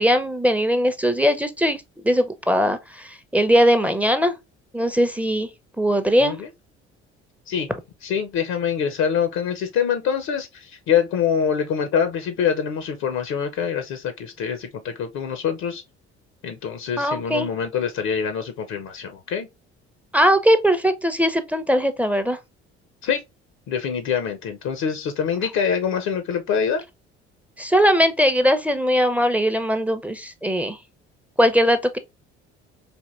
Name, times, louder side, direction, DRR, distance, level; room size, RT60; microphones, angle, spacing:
voice 1, 0.0-4.4 4.7-5.5 5.8-6.4 17.0-17.5 20.1-22.4 27.6-30.8 31.4-32.0, equal, 5° right, 0.6 m, -20 dB
voice 2, 8.0-15.8 16.4-19.5 23.0-23.2 23.7-26.8, left 7 dB, 60° left, 0.8 m, -25 dB
4.3 x 2.8 x 2.4 m
hypercardioid pair, 55°, 32 cm